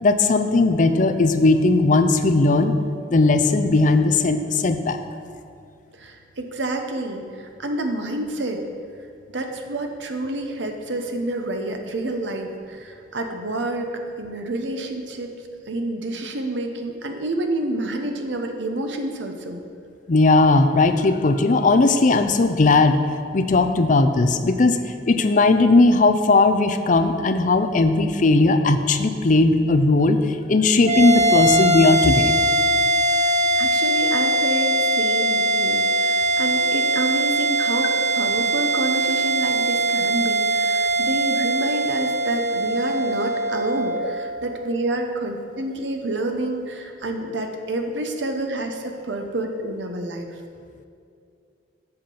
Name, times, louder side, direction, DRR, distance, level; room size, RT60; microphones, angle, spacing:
voice 1, 0.0-2.7 3.1-5.0 20.1-23.0 23.3-24.8 25.1-30.2 30.5-32.3, left 3 dB, 45° left, 8 dB, 0.5 m, -17 dB
voice 2, 6.0-8.6 9.3-15.3 15.7-19.6 33.1-50.3, right 1 dB, 75° right, 4 dB, 0.9 m, -28 dB
sound 1, 30.8-45.4, right 1 dB, 40° right, 0.7 m, -21 dB
7.8 x 5.8 x 6.9 m, 2.4 s
head